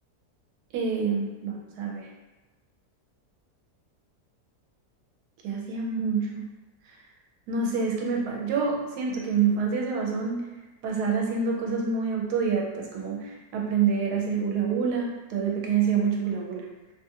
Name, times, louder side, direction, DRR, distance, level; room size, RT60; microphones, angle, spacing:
voice 1, 0.7-2.1 5.4-6.5 7.5-10.4 10.8-16.7, right 5 dB, 80° right, -1 dB, 1.1 m, -27 dB
2.7 x 2.4 x 2.7 m, 1.1 s
omnidirectional pair, 1.7 m